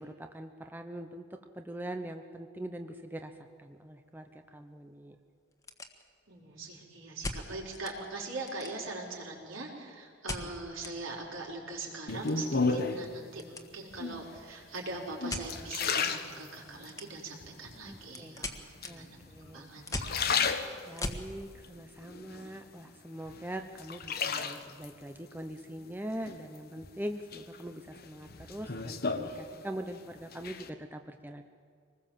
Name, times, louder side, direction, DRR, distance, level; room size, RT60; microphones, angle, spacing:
voice 1, 0.0-3.3 3.6-5.2 10.3-10.5 17.8-18.4 18.9-19.7 20.9-31.4, right 1 dB, 10° right, 6 dB, 0.8 m, -42 dB
sound 1, 3.2-3.4 3.7-3.8 4.4-4.5 4.8-4.9 5.4-6.4 7.2-8.0 8.3-9.1 10.3-11.0 11.3-11.4 11.7-13.7 13.9-14.3 15.3-15.5 16.8-17.4 17.7-21.3, left 2 dB, 15° left, 1.6 m, -40 dB
voice 2, 6.3-18.6 18.8-19.2 19.4-20.5, right 2 dB, 70° right, -1 dB, 4.8 m, -42 dB
sound 2, 12.1-13.1 13.9-14.4 14.9-16.9 17.4-18.0 18.8-19.5 19.8-21.2 21.6-22.9 23.3-24.9 26.3-26.9 27.3-29.9 30.2-30.7, left 5 dB, 50° left, 1.3 m, -33 dB
25.0 x 20.0 x 7.5 m, 2.1 s
head